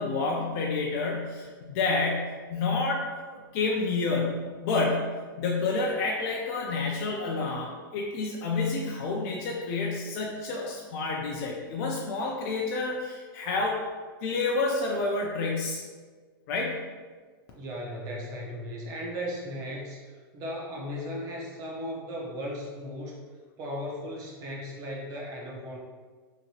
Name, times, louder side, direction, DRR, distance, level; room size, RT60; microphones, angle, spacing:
voice 1, 0.0-5.1 5.4-13.8 14.2-15.8 16.5-16.8, left 3 dB, 45° left, -2 dB, 0.4 m, -29 dB
voice 2, 17.5-23.2 23.6-25.8, equal, 30° right, -2 dB, 0.6 m, -36 dB
2.8 x 2.7 x 2.8 m, 1.5 s
supercardioid pair, 150°, 12 cm